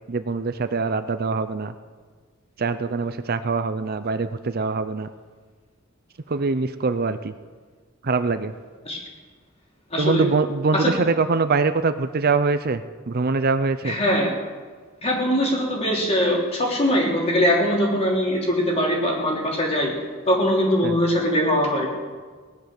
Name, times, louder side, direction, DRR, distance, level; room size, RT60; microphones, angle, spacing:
voice 1, 0.1-1.7 2.6-5.1 6.3-7.3 8.0-8.5 10.0-14.0 20.8-21.0, right 4 dB, 45° right, 11 dB, 0.6 m, -23 dB
voice 2, 9.9-10.3 10.7-10.9 13.8-14.3 15.0-19.9 20.3-21.9, equal, 30° left, -2 dB, 3.5 m, -21 dB
18.5 x 11.0 x 6.7 m, 1.5 s
head